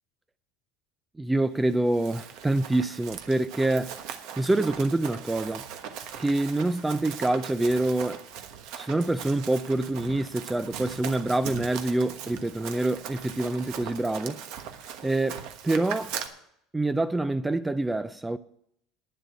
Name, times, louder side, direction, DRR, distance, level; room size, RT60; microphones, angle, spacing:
voice 1, 1.2-4.0 4.4-5.7 6.2-8.2 8.8-14.4 15.0-16.2 16.7-18.4, right 2 dB, 10° right, 0.3 m, -26 dB
Run, 1.7-16.3, right 8 dB, 65° right, 1.2 m, -40 dB
9.9 x 7.5 x 8.1 m
cardioid pair, 140°, 0 cm